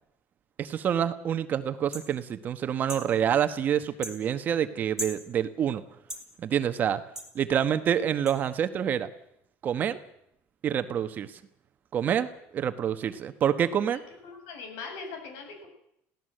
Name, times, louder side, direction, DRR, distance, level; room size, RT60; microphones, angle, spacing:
voice 1, 0.6-5.8 6.4-7.0 7.3-9.1 9.6-10.0 10.6-11.4 11.9-14.0, right 9 dB, 35° right, 10 dB, 1.2 m, -27 dB
sound 1, 1.9-2.1 2.9-3.1 4.0-4.2 5.0-5.2 6.1-6.3 7.2-7.3 8.3-8.4, equal, 10° right, 3.0 m, -36 dB
voice 2, 13.9-15.7, left 4 dB, 80° left, 4 dB, 7.9 m, -41 dB
24.0 x 16.5 x 7.8 m, 0.75 s
cardioid pair, 160°, 5 cm